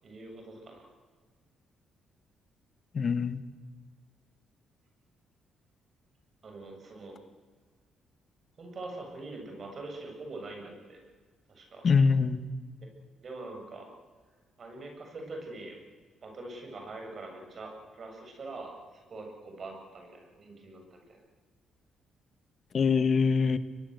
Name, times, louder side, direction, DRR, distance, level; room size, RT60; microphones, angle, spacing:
voice 1, 0.0-0.9 6.4-7.2 8.6-11.0 11.5-11.9 13.2-13.9 14.6-15.8 16.2-21.0, right 2 dB, 45° right, 2 dB, 7.7 m, -43 dB
voice 2, 2.9-3.4 11.8-12.5 22.7-23.6, left 5 dB, 45° left, 13 dB, 1.4 m, -24 dB
22.5 x 22.5 x 8.1 m, 1.5 s
cardioid pair, 90°, 0 cm